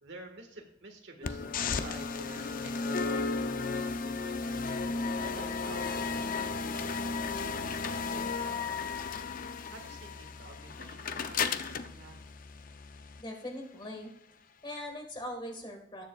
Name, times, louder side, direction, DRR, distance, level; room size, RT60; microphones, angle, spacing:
voice 1, 0.0-4.4 5.2-7.8 8.1-9.0 9.7-12.2, right 2 dB, 65° right, 2 dB, 1.6 m, -50 dB
sound 1, 1.2-13.2, left 4 dB, 45° left, 0.5 m, -34 dB
voice 2, 13.2-14.1 14.6-16.0, left 1 dB, 25° left, 2 dB, 1.6 m, -41 dB
19.5 x 6.8 x 2.4 m, 0.71 s
head